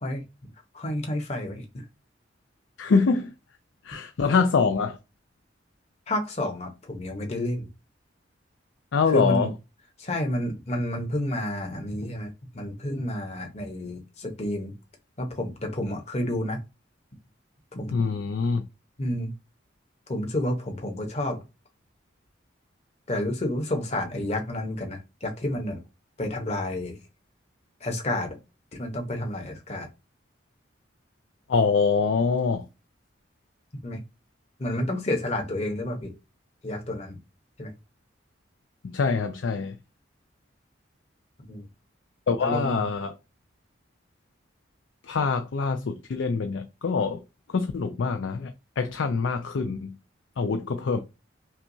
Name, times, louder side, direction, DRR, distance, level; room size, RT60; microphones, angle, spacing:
voice 1, 0.7-1.8 6.1-7.7 9.1-9.5 10.0-14.7 15.2-16.6 17.7-17.9 19.0-19.3 20.1-21.4 23.1-25.8 26.2-27.0 27.8-28.4 28.7-29.9 33.8-34.0 34.6-36.1 36.6-37.2 37.6-37.7 41.5-41.7 42.4-42.8, left 1 dB, 35° left, 0.9 m, -30 dB
voice 2, 2.8-3.3 3.8-5.0 8.9-9.5 17.9-18.6 31.5-32.6 38.9-39.7 42.3-43.1 45.1-47.2 47.5-49.9 50.4-51.0, left 5 dB, 75° left, 0.4 m, -24 dB
5.7 x 2.3 x 2.6 m
head